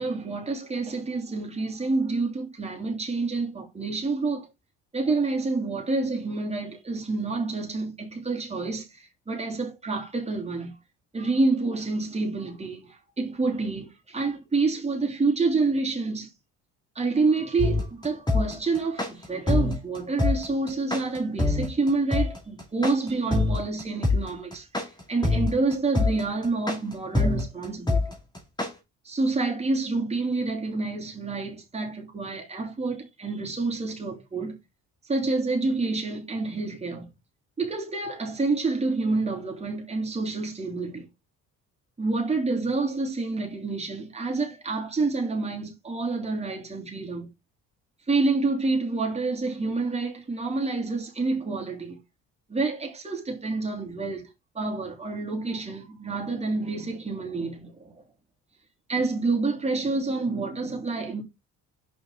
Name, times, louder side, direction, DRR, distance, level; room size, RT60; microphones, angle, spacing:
voice 1, 0.0-4.5 4.9-10.7 11.1-16.3 16.9-28.0 29.0-34.6 35.0-37.1 37.6-41.1 42.0-47.3 48.1-52.0 52.5-54.3 54.5-57.9 58.9-61.2, right 3 dB, 20° right, 3.1 m, -28 dB
sound 1, 17.6-28.7, left 2 dB, 15° left, 2.4 m, -24 dB
6.5 x 5.7 x 3.9 m
cardioid pair, 115°, 30 cm